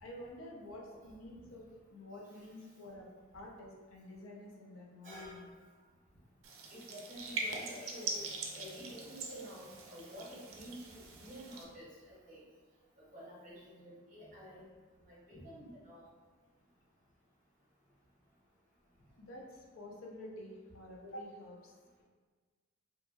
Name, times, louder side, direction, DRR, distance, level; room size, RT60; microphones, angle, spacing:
voice 1, 0.0-1.6 1.9-3.1 3.3-5.5 19.2-21.7, left 1 dB, 80° left, -1 dB, 0.5 m, -49 dB
voice 2, 5.0-5.5 6.7-12.4 13.0-14.6 15.0-16.1, equal, 40° right, -6 dB, 0.8 m, -50 dB
sound 1, 6.4-11.6, right 3 dB, 90° right, 0.4 m, -43 dB
2.6 x 2.5 x 2.3 m, 1.4 s
head